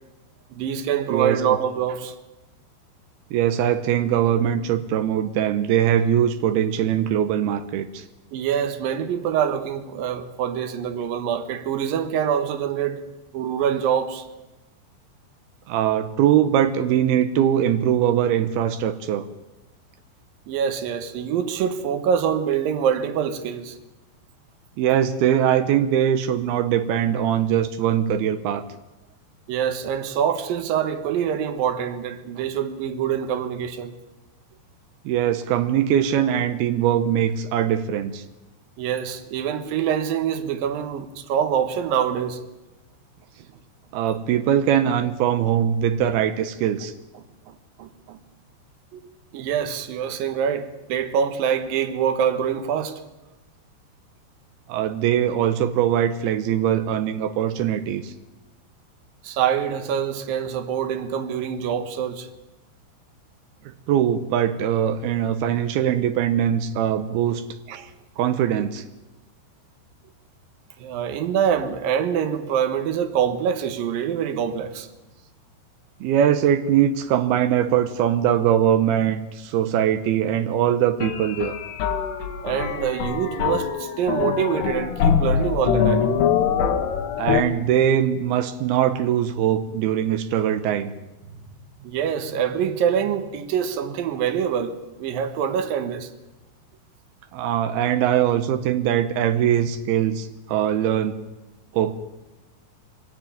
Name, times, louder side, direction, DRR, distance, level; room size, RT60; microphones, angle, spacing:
voice 1, 0.5-2.1 8.3-13.0 13.3-14.3 20.5-23.8 29.5-34.0 38.8-42.4 47.1-48.2 48.9-49.0 49.3-53.0 59.2-62.3 67.7-67.9 70.8-74.9 82.4-86.4 91.4-91.5 91.8-96.1, right 8 dB, 65° right, 2.4 m, -25 dB
voice 2, 3.3-8.0 15.7-19.3 24.8-28.6 35.1-38.2 43.9-46.9 54.7-58.1 63.9-67.4 68.2-68.8 76.0-81.6 87.2-90.9 97.3-101.2 101.7-101.9, right 10 dB, 85° right, 2.2 m, -21 dB
sound 1, 81.0-87.4, left 8 dB, 75° left, 4.0 m, -23 dB
24.0 x 17.5 x 9.2 m
omnidirectional pair, 5.8 m